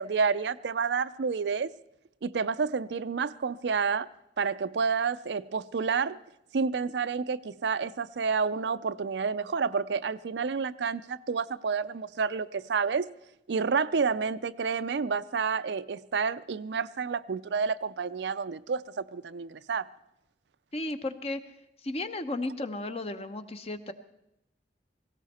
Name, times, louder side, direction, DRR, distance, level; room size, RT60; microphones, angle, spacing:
voice 1, 0.0-1.7 2.2-4.1 4.4-6.2 6.5-13.1 13.5-19.9, right 5 dB, 75° right, 0.5 m, -29 dB
voice 2, 20.7-21.4 21.8-23.9, left 2 dB, 35° left, 0.8 m, -34 dB
18.0 x 17.0 x 4.2 m
head